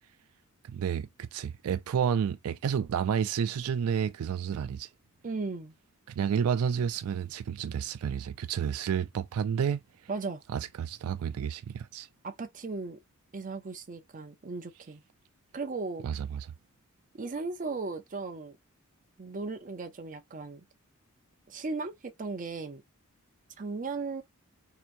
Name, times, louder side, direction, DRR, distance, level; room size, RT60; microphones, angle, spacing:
voice 1, 0.6-4.9 6.1-9.8 10.5-12.1 16.0-16.5, right 7 dB, 80° right, 0.3 m, -30 dB
voice 2, 5.2-5.7 10.1-10.4 12.2-13.0 13.3-15.0 15.5-16.1 17.1-18.6 19.2-20.6 21.5-22.8 23.6-24.2, right 3 dB, 35° right, 0.6 m, -36 dB
4.5 x 2.9 x 2.5 m
head